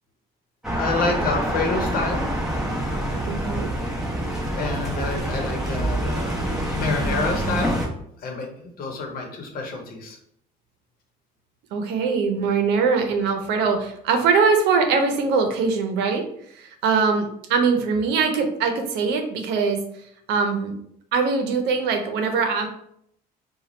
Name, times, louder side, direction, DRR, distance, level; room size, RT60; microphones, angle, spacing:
sound 1, 0.6-7.9, right 1 dB, ahead, 1.0 m, -26 dB
voice 1, 0.8-2.2 4.6-6.3 6.7-7.7 8.2-8.5 8.8-10.2, left 3 dB, 60° left, 2 dB, 1.0 m, -27 dB
voice 2, 3.3-3.7 11.7-16.2 16.5-19.8 20.3-20.8 21.1-22.7, right 5 dB, 90° right, 5 dB, 0.6 m, -22 dB
3.0 x 2.3 x 4.1 m, 0.72 s
cardioid pair, 110°, 17 cm